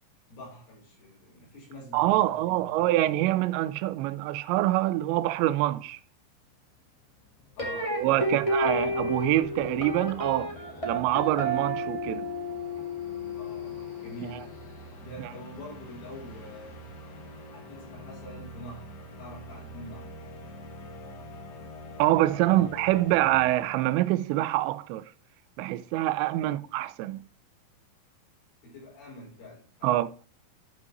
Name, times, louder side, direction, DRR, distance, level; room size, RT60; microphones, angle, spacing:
voice 1, 0.3-2.9 7.6-8.5 13.3-14.6 15.0-16.9 17.5-18.9 19.2-20.2 22.5-22.7 26.3-26.6 28.6-30.0, left 1 dB, 75° left, 7.5 m, -45 dB
voice 2, 1.9-6.0 7.8-10.5 10.8-12.3 15.2-15.3 22.0-25.1 25.6-27.2 29.8-30.1, right 15 dB, 90° right, 2.9 m, -25 dB
sound 1, 6.4-6.5 6.7-24.1, left 1 dB, 50° left, 2.8 m, -46 dB
sound 2, 7.6-14.7, equal, 35° left, 0.5 m, -32 dB
13.0 x 6.1 x 3.0 m
omnidirectional pair, 5.0 m